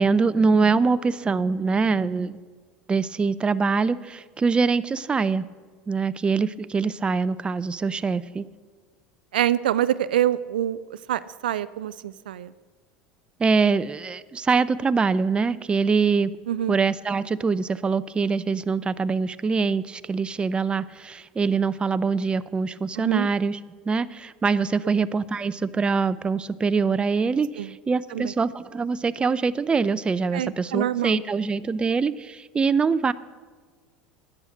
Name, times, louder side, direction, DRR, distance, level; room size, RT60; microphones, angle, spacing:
voice 1, 0.0-2.4 2.9-5.5 5.9-8.5 13.4-16.3 16.7-23.6 23.9-33.1, right 4 dB, 20° right, 15 dB, 0.5 m, -24 dB
voice 2, 9.3-12.5 16.5-16.8 23.0-23.3 24.8-24.9 27.6-27.7 28.1-28.3 30.3-31.2, right 11 dB, 80° right, 16 dB, 0.3 m, -26 dB
11.0 x 8.6 x 6.4 m, 1.5 s
hypercardioid pair, 80°, 5 cm